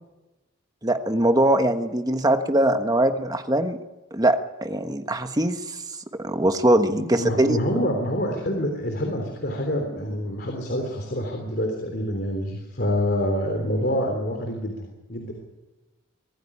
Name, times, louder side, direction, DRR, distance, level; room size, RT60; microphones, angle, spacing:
voice 1, 0.8-3.8 4.1-4.4 4.6-5.8 6.2-7.6, right 1 dB, 20° right, 7 dB, 1.3 m, -21 dB
voice 2, 6.9-14.7 15.1-15.3, equal, 50° left, 3 dB, 3.5 m, -26 dB
24.0 x 15.5 x 9.9 m, 1.1 s
head